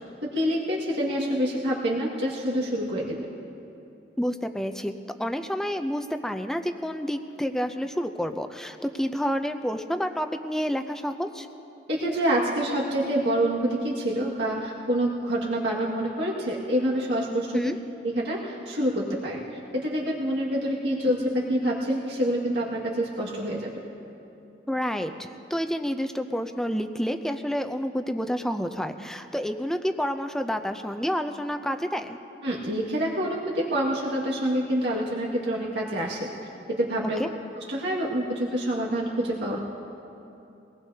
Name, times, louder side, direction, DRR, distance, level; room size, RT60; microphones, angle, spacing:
voice 1, 0.2-3.3 11.9-17.7 18.0-19.4 19.7-23.7 32.4-36.3 36.7-37.2 37.6-39.6, right 1 dB, 80° right, -5 dB, 1.9 m, -27 dB
voice 2, 4.2-11.5 17.5-17.8 24.7-32.2 37.2-37.3, equal, 5° left, 6 dB, 0.5 m, -29 dB
23.5 x 19.0 x 2.8 m, 2.8 s
head